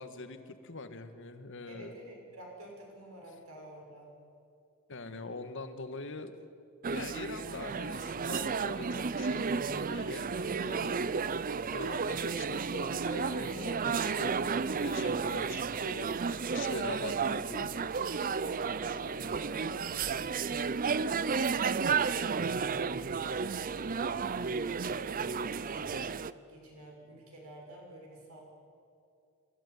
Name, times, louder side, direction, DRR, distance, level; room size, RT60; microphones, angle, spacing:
voice 1, 0.0-2.0 4.9-6.3 6.9-11.5 11.7-16.3 16.5-17.7, left 3 dB, 60° left, 9 dB, 1.6 m, -43 dB
voice 2, 1.7-4.1 18.6-26.0 26.5-28.4, right 1 dB, 80° right, 0 dB, 6.4 m, -50 dB
sound 1, 6.8-26.3, right 5 dB, 40° right, 0.5 m, -32 dB
25.5 x 15.0 x 9.6 m, 2.5 s
head